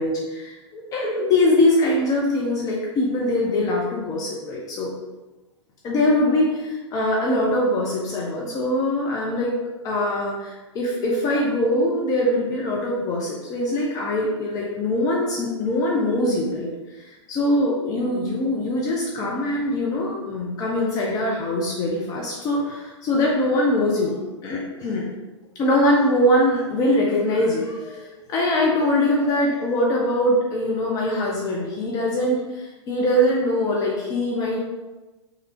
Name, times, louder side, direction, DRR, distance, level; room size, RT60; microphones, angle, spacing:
voice 1, 0.0-4.9 5.8-9.5 9.8-16.7 17.0-24.1 24.4-25.1 25.6-34.6, left 1 dB, 25° left, -3 dB, 0.4 m, -22 dB
3.2 x 2.4 x 2.8 m, 1.1 s
figure-of-eight pair, 100°, 16 cm